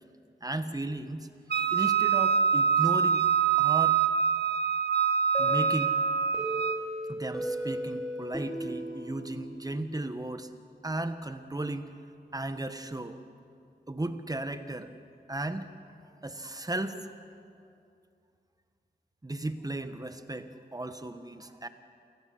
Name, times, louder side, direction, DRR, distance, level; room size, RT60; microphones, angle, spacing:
voice 1, 0.4-1.3 1.5-3.2 3.6-4.0 5.4-5.9 7.1-10.5 10.8-11.9 12.3-13.2 13.9-14.9 15.3-15.7 16.2-17.1 19.2-21.7, right 2 dB, 20° right, 9 dB, 1.3 m, -35 dB
Wind instrument woodwind instrument, 1.5-6.9, right 7 dB, 65° right, 0.9 m, -25 dB
sound 1, 5.3-10.0, equal, ahead, 5.0 m, -37 dB
29.0 x 17.5 x 7.9 m, 2.5 s
wide cardioid pair, 115°, 18 cm